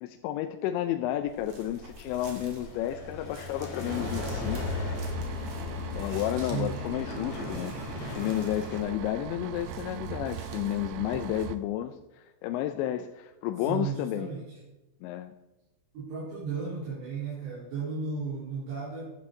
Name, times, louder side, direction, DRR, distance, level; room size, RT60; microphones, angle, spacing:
voice 1, 0.0-4.9 5.9-7.7 8.2-14.3 15.0-15.3, left 12 dB, 85° left, 7 dB, 2.9 m, -32 dB
sound 1, 1.2-8.8, left 4 dB, 45° left, 2.3 m, -37 dB
sound 2, 1.3-11.5, right 3 dB, 45° right, 2.4 m, -49 dB
sound 3, 3.9-11.6, right 9 dB, 90° right, 2.3 m, -40 dB
voice 2, 6.5-6.8 13.7-14.6 15.9-19.1, right 5 dB, 65° right, -7 dB, 5.4 m, -34 dB
14.5 x 12.0 x 3.8 m, 1.0 s
omnidirectional pair, 5.2 m